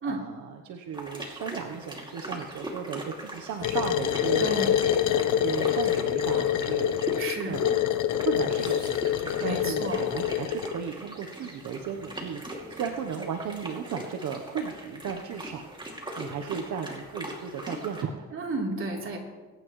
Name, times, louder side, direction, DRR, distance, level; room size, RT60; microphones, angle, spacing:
voice 1, 0.0-4.5 5.4-7.0 7.5-7.8 8.2-9.0 9.4-15.7 16.2-18.3, right 7 dB, 75° right, 4 dB, 1.1 m, -35 dB
sound 1, 0.9-18.0, right 1 dB, 15° right, 2.6 m, -41 dB
sound 2, 3.6-10.7, left 10 dB, 80° left, 0.8 m, -26 dB
voice 2, 4.4-4.8 7.2-7.6 9.4-10.0 18.3-19.2, right 3 dB, 45° right, -2 dB, 3.6 m, -32 dB
22.0 x 10.0 x 3.2 m, 1.3 s
cardioid pair, 90°, 30 cm